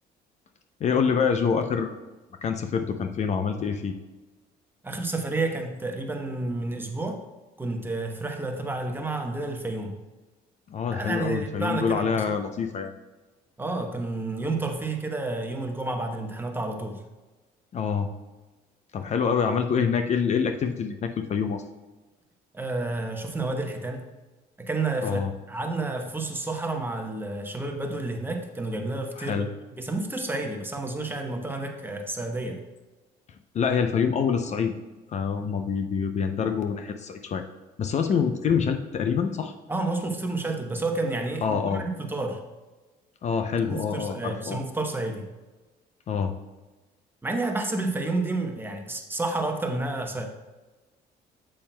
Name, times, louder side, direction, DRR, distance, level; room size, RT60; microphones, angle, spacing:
voice 1, 0.8-2.0 2.4-3.9 10.7-12.9 17.7-18.1 18.9-21.6 25.0-25.3 29.2-29.5 33.5-34.7 35.1-37.5 37.8-39.5 41.4-41.8 43.2-44.6 46.1-46.3, left 6 dB, 45° left, 6 dB, 0.5 m, -26 dB
voice 2, 4.8-7.2 7.6-10.0 10.9-12.2 13.6-17.0 22.5-24.0 24.6-25.2 25.5-29.4 29.8-32.6 39.7-42.4 43.7-45.3 47.2-50.3, right 2 dB, 10° right, 3 dB, 0.9 m, -30 dB
8.4 x 7.6 x 2.2 m, 1.2 s
cardioid pair, 110°, 17 cm